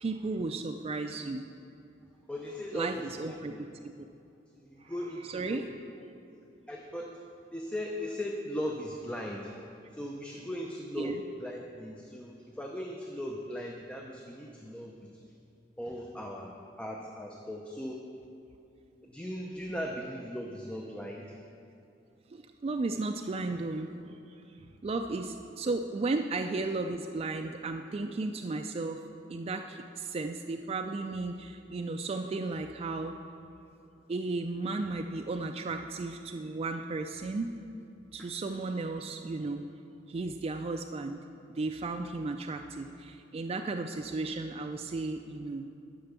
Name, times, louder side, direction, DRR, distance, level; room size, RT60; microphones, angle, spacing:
voice 1, 0.0-1.4 2.7-3.5 3.8-3.9 4.8-4.9 5.3-5.6 6.0-6.1 11.0-11.2 22.3-29.0 29.3-33.2 34.1-37.5 38.1-39.6 40.1-41.2 41.5-45.7, right 3 dB, 35° right, 5 dB, 0.3 m, -34 dB
voice 2, 2.3-3.6 4.5-5.7 6.7-7.2 7.5-9.7 9.9-15.1 15.8-18.0 19.0-21.4 38.2-38.3, equal, 5° left, 0 dB, 0.6 m, -38 dB
11.5 x 5.9 x 6.7 m, 2.7 s
head